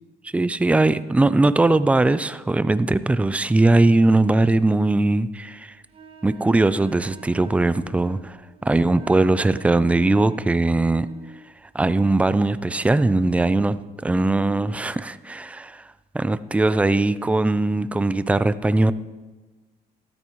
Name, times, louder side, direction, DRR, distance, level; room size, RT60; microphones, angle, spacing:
voice 1, 0.3-5.7 6.2-11.1 11.7-15.8 16.1-18.9, right 2 dB, 10° right, 15 dB, 0.4 m, -20 dB
Wind instrument woodwind instrument, 5.9-11.4, right 4 dB, 35° right, 1.4 m, -45 dB
13.5 x 12.5 x 3.1 m, 1.2 s
cardioid pair, 110°, 17 cm